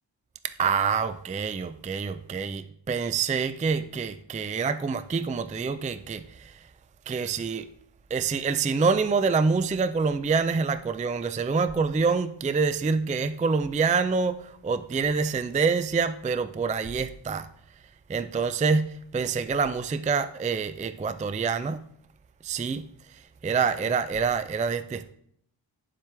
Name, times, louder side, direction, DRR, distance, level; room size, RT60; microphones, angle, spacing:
voice 1, 0.6-6.6 7.1-7.7 8.1-17.5 18.1-21.8 22.4-22.8 23.4-25.1, right 5 dB, 20° right, 0.3 m, -26 dB
9.4 x 7.4 x 3.4 m
wide cardioid pair, 85°, 46 cm